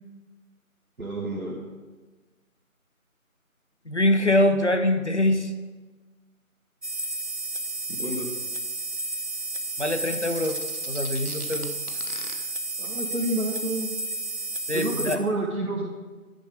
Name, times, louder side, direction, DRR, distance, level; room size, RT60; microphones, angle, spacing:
voice 1, 1.0-1.6 7.9-8.3 12.8-13.9 14.7-15.9, right 1 dB, 85° right, -3 dB, 1.5 m, -29 dB
voice 2, 3.9-5.5 9.8-10.6 10.9-11.7 14.7-15.2, left 1 dB, 55° left, 8 dB, 0.7 m, -23 dB
sound 1, 6.8-15.2, right 2 dB, 50° right, 0.8 m, -32 dB
sound 2, 10.0-12.3, left 2 dB, 90° left, 1.3 m, -41 dB
10.0 x 5.1 x 4.9 m, 1.3 s
figure-of-eight pair, 175°, 42 cm